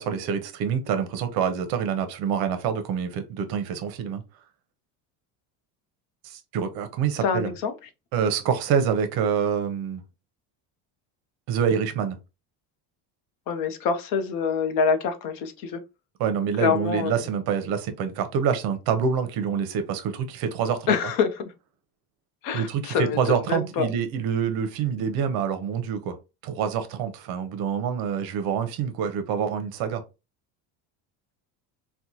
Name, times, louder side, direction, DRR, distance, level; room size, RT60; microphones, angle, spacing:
voice 1, 0.0-4.2 6.2-7.5 8.1-10.0 11.5-12.2 16.2-21.0 22.5-26.2 26.4-30.0, right 7 dB, 60° right, 0.7 m, -26 dB
voice 2, 7.2-7.7 13.5-15.8 16.6-17.2 20.9-21.5 22.4-23.9, left 6 dB, 55° left, 0.6 m, -26 dB
4.2 x 2.2 x 2.8 m
cardioid pair, 180°, 41 cm